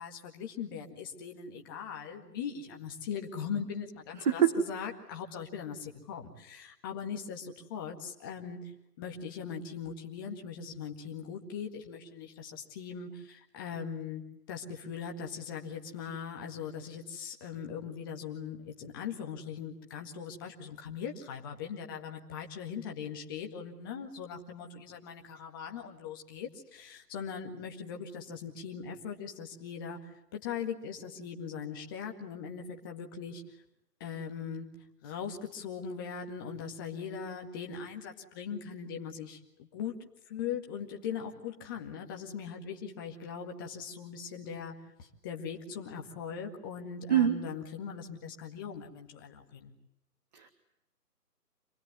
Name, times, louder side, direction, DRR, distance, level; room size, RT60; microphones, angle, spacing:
voice 1, 0.0-33.6 34.0-34.7 35.0-49.7, left 7 dB, 15° left, 2 dB, 1.9 m, -40 dB
voice 2, 4.2-4.5 47.1-47.4 50.3-50.5, right 10 dB, 25° right, 4 dB, 2.0 m, -24 dB
27.5 x 20.0 x 9.6 m, 0.80 s
figure-of-eight pair, 155°, 48 cm